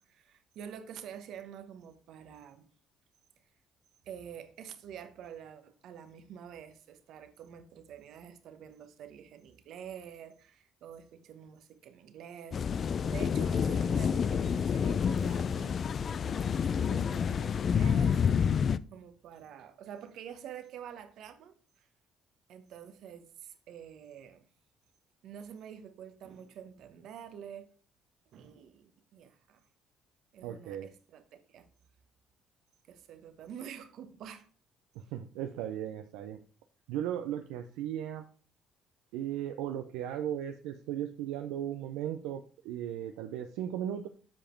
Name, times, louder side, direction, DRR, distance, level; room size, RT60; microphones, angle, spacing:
voice 1, 0.0-2.7 4.1-15.8 16.2-18.6 18.9-21.8 22.5-24.5 25.2-27.7 28.3-29.6 30.3-31.2 31.5-31.7 32.9-34.5, right 8 dB, 70° right, 1.0 m, -47 dB
sound 1, 12.5-18.8, left 7 dB, 50° left, 0.3 m, -28 dB
voice 2, 30.4-30.9 34.9-36.4 36.9-38.3 39.1-44.1, right 10 dB, 90° right, 0.5 m, -36 dB
7.5 x 5.0 x 4.4 m
supercardioid pair, 80°, 0 cm